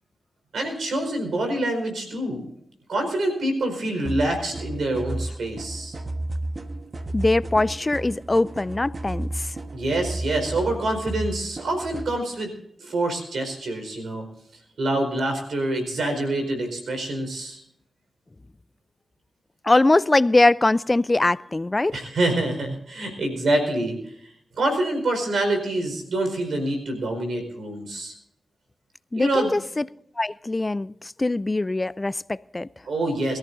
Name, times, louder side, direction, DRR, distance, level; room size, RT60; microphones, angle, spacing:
voice 1, 0.5-2.5 2.9-5.9 9.7-12.5 12.8-14.3 14.8-17.6 21.9-24.0 24.6-28.1 29.1-29.5 32.9-33.4, right 1 dB, 85° right, 4 dB, 4.8 m, -26 dB
sound 1, 4.1-12.1, right 1 dB, 50° right, 1.4 m, -33 dB
voice 2, 7.1-9.6 19.6-22.1 29.1-29.9 30.2-32.7, left 2 dB, 35° left, 19 dB, 0.4 m, -22 dB
22.5 x 14.0 x 2.7 m, 0.74 s
cardioid pair, 40°, 0 cm